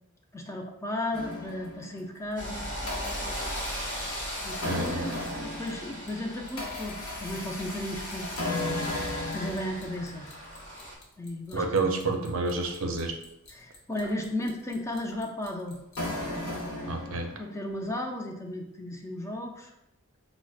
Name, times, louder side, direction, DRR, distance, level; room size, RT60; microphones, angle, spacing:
voice 1, 0.3-2.7 4.4-10.3 11.2-11.9 13.5-15.8 16.5-19.7, left 1 dB, 15° left, 1 dB, 0.3 m, -35 dB
sound 1, 1.1-2.1 2.5-17.6, left 1 dB, 70° left, 0.8 m, -36 dB
sound 2, 2.4-11.0, equal, 35° left, 1.2 m, -39 dB
voice 2, 4.7-5.0 11.5-13.2 16.9-17.3, right 3 dB, 65° right, 3 dB, 0.5 m, -29 dB
4.6 x 2.1 x 2.3 m, 0.85 s
head